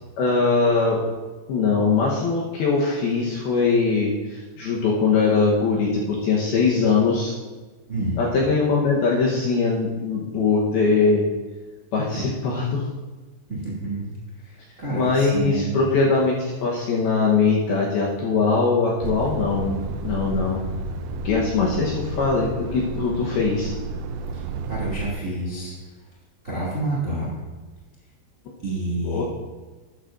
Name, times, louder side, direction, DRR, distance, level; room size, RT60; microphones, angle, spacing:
voice 1, 0.2-1.1 1.5-7.3 8.2-11.3 11.9-12.8 14.9-20.6 21.2-23.7 29.0-29.2, left 4 dB, 75° left, -3 dB, 2.5 m, -21 dB
voice 2, 7.9-8.2 12.1-12.3 13.5-15.9 21.8-22.0 24.3-25.7 26.4-27.3 28.6-29.2, right 2 dB, 35° right, -6 dB, 1.1 m, -29 dB
Truck, 19.0-25.1, right 3 dB, 85° right, 2.5 m, -31 dB
13.0 x 11.5 x 2.6 m, 1.3 s
omnidirectional pair, 5.5 m